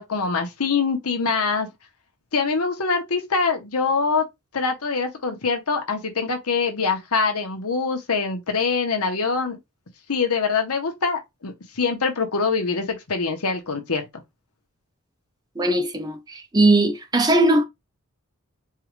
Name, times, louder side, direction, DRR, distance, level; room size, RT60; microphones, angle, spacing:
voice 1, 0.0-1.7 2.3-4.2 4.5-9.6 10.1-14.0, left 4 dB, 85° left, 1.0 m, -24 dB
voice 2, 15.6-17.6, right 2 dB, 20° right, 0.5 m, -19 dB
4.6 x 2.4 x 3.1 m
head